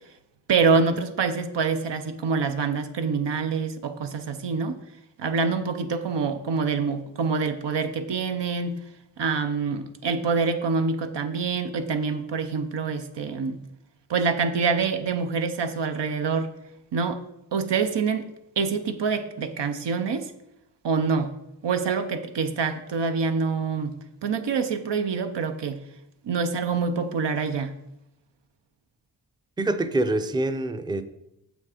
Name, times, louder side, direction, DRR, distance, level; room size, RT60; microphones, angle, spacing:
voice 1, 0.5-4.8 5.2-8.8 9.2-13.6 14.1-16.5 16.9-17.2 17.5-18.3 18.6-20.3 20.8-21.3 21.6-25.8 26.2-27.7, right 5 dB, 85° right, 0.8 m, -26 dB
voice 2, 29.6-31.0, right 2 dB, 10° right, 0.4 m, -25 dB
7.0 x 6.2 x 5.0 m
wide cardioid pair, 105°, 41 cm